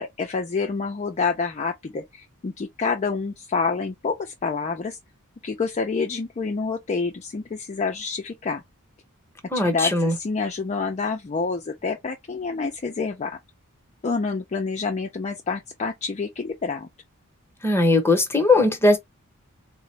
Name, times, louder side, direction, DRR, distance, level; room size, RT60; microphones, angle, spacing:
voice 1, 0.0-5.0 5.4-8.6 9.6-13.4 14.0-16.9, left 4 dB, 30° left, 0.4 m, -28 dB
voice 2, 9.5-10.1 17.6-19.0, left 2 dB, 10° left, 0.8 m, -19 dB
3.7 x 2.0 x 3.1 m
head